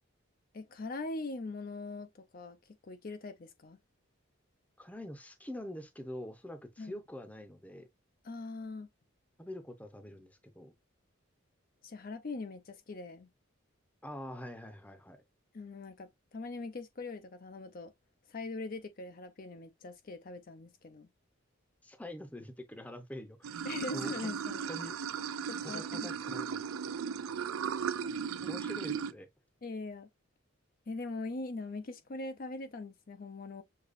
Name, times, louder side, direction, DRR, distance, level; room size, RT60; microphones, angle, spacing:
voice 1, 0.5-3.8 6.8-7.0 8.2-8.9 11.8-13.3 15.5-17.9 18.3-21.1 23.6-24.6 25.5-26.1 29.6-30.1 30.9-33.6, left 3 dB, 45° left, 0.5 m, -41 dB
voice 2, 4.8-7.9 9.4-10.7 14.0-15.2 21.8-23.6 23.9-24.4 24.7-24.9 25.6-26.6 28.0-28.1 28.4-29.3, left 1 dB, 5° left, 0.7 m, -45 dB
Water / Sink (filling or washing), 23.4-29.1, right 7 dB, 90° right, 0.4 m, -36 dB
6.6 x 2.9 x 2.5 m
head